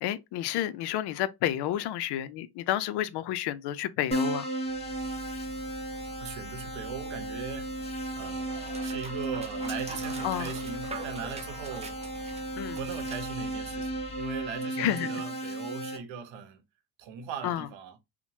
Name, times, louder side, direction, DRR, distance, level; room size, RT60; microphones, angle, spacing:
voice 1, 0.0-4.5 10.2-10.5 12.6-12.8 14.8-15.2 17.4-17.7, left 12 dB, 55° left, 0.5 m, -30 dB
Keyboard (musical), 4.1-16.0, right 1 dB, 15° left, 0.8 m, -35 dB
Dog, 4.6-14.6, equal, 15° right, 0.5 m, -44 dB
voice 2, 6.2-7.8 8.2-12.0 12.8-16.6 17.0-18.0, right 7 dB, 65° right, 0.8 m, -39 dB
2.9 x 2.1 x 2.7 m
supercardioid pair, 100°, 49 cm